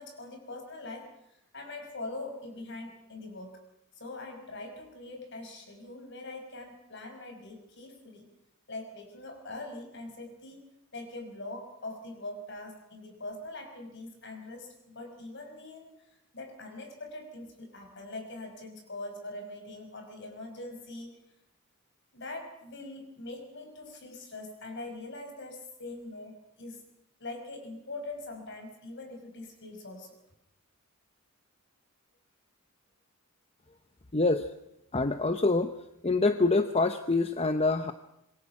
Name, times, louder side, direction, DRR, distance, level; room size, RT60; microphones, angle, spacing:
voice 1, 0.0-3.6 4.0-8.3 8.7-10.6 10.9-15.9 16.3-21.1 22.1-26.8 27.2-30.1, left 2 dB, 55° left, 4 dB, 5.4 m, -42 dB
voice 2, 34.1-34.5 34.9-35.7 36.0-37.9, left 3 dB, 25° left, 8 dB, 0.8 m, -25 dB
26.0 x 22.0 x 6.0 m, 0.81 s
head